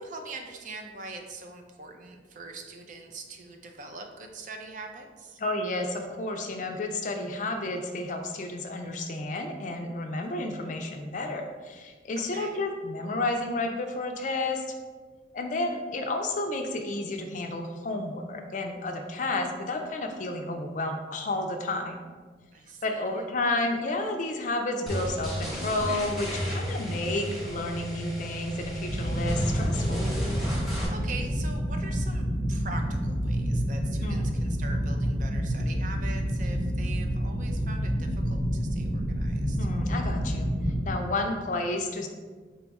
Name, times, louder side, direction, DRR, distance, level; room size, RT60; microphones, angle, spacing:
voice 1, 0.0-5.4 12.3-12.7 22.5-23.2 30.5-39.6, right 3 dB, 45° right, 4 dB, 0.4 m, -43 dB
voice 2, 5.4-14.7 15.3-22.1 22.8-30.1 34.0-34.4 39.6-42.1, left 2 dB, 45° left, 4 dB, 0.4 m, -31 dB
sound 1, 24.9-30.9, equal, ahead, 0.9 m, -33 dB
sound 2, 28.9-40.9, equal, 60° right, 1.0 m, -28 dB
4.1 x 2.3 x 4.0 m, 1.4 s
head